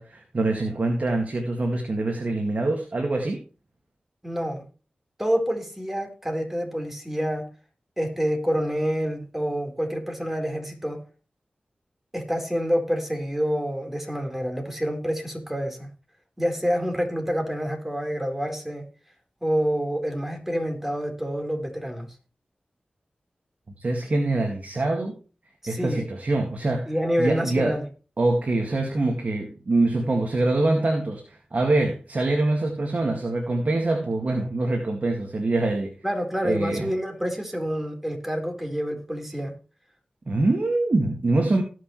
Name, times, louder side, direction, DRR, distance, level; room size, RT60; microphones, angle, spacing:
voice 1, 0.0-3.4 23.8-25.2 25.7-26.9 27.2-27.8 28.2-35.9 36.4-36.9 40.3-41.6, right 2 dB, 55° right, 2.0 m, -24 dB
voice 2, 4.2-4.7 5.2-7.5 8.0-11.0 12.1-15.9 16.4-18.9 19.4-22.1 25.6-26.0 26.9-27.8 36.0-39.6, equal, 10° right, 4.2 m, -27 dB
18.0 x 6.5 x 3.2 m
cardioid pair, 45°, 3 cm